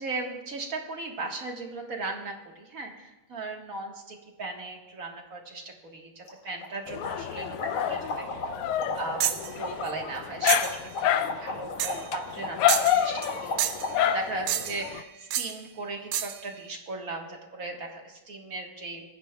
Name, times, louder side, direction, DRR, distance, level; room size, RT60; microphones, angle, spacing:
voice 1, 0.0-13.6 14.0-19.0, right 3 dB, 45° right, 1 dB, 1.8 m, -37 dB
sound 1, 6.2-6.3 6.6-6.7 7.0-14.3, left 3 dB, 70° left, 2.8 m, -35 dB
Dog, 6.9-15.0, left 10 dB, 90° left, 1.5 m, -29 dB
sound 2, 9.2-9.5 10.5-10.8 11.8-12.1 12.7-13.3 13.6-13.9 14.5-14.9 15.3-15.5 16.1-16.4, right 10 dB, 80° right, 1.6 m, -29 dB
19.5 x 15.0 x 2.3 m, 1.1 s
omnidirectional pair, 2.4 m